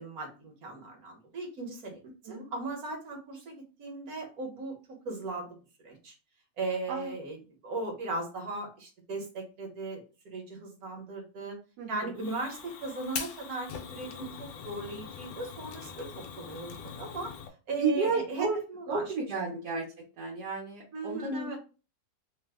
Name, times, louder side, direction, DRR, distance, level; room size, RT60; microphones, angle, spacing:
voice 1, 0.0-4.8 5.0-5.6 5.8-6.1 6.6-11.6 11.9-17.3 17.7-19.1 20.9-21.6, right 3 dB, 65° right, 2 dB, 1.4 m, -38 dB
Fire, 12.2-17.5, left 7 dB, 75° left, 1.0 m, -42 dB
voice 2, 17.8-18.6 18.9-19.9 20.2-21.5, right 4 dB, 90° right, -2 dB, 1.3 m, -31 dB
3.1 x 2.0 x 3.3 m, 0.33 s
omnidirectional pair, 1.7 m